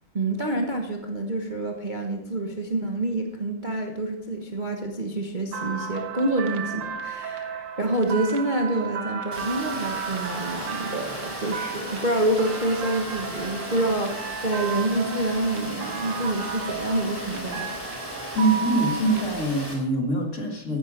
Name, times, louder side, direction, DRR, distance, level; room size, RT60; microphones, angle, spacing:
voice 1, 0.1-17.7, right 1 dB, 30° right, 2 dB, 1.1 m, -27 dB
sound 1, 5.5-19.2, right 7 dB, 65° right, 1.8 m, -34 dB
Water, 9.3-19.7, equal, 10° left, 3.4 m, -36 dB
voice 2, 18.3-20.8, right 2 dB, 35° left, 3 dB, 2.1 m, -24 dB
15.0 x 10.0 x 5.1 m, 0.82 s
omnidirectional pair, 2.3 m